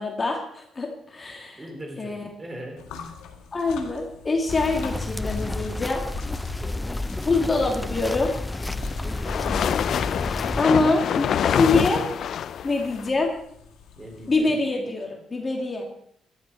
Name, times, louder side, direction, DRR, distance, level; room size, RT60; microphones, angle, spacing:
voice 1, 0.0-1.6 2.0-2.2 3.5-6.1 7.2-8.3 10.6-12.1 12.6-13.3 14.3-15.8, left 3 dB, 30° left, 1 dB, 2.5 m, -24 dB
voice 2, 1.5-2.9 6.6-7.2 9.0-9.6 14.0-14.6, right 1 dB, 25° right, 2 dB, 4.6 m, -40 dB
sound 1, 2.8-14.5, left 6 dB, 90° left, 1.8 m, -43 dB
sound 2, 4.5-10.6, left 2 dB, 15° left, 0.6 m, -31 dB
sound 3, 8.0-13.1, left 9 dB, 65° left, 0.4 m, -26 dB
16.0 x 12.0 x 4.1 m, 0.70 s
cardioid pair, 90°, 0 cm